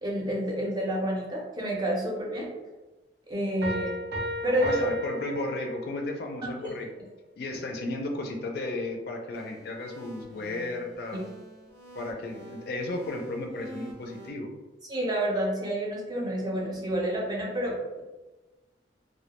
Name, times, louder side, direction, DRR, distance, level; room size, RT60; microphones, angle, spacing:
voice 1, 0.0-2.5 3.3-4.0 4.4-4.8 6.4-6.5 14.9-18.0, right 1 dB, 25° right, -3 dB, 0.5 m, -29 dB
sound 1, 3.6-6.1, left 1 dB, 70° right, 0.5 m, -34 dB
voice 2, 4.4-7.0 7.4-11.3 12.0-14.5, left 2 dB, 60° left, 3 dB, 0.3 m, -34 dB
sound 2, 9.3-14.3, right 1 dB, 85° right, 0.8 m, -47 dB
2.2 x 2.1 x 2.9 m, 1.2 s
head